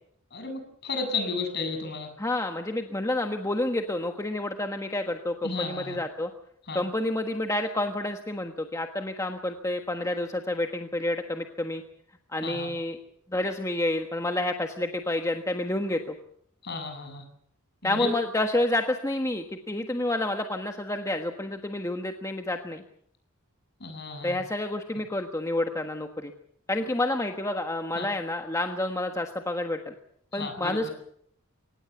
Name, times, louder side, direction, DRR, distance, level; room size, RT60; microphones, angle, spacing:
voice 1, 0.3-2.1 5.4-6.0 6.7-6.8 12.4-12.7 16.6-17.2 17.8-18.1 23.8-24.4 28.0-28.1 30.3-30.9, left 4 dB, 50° left, 6 dB, 7.3 m, -33 dB
voice 2, 2.2-6.3 6.7-11.8 12.3-13.0 13.3-16.2 17.8-22.8 24.2-26.3 26.7-29.9 30.3-30.9, left 1 dB, 15° left, 4 dB, 1.4 m, -29 dB
24.5 x 19.0 x 7.1 m, 0.66 s
head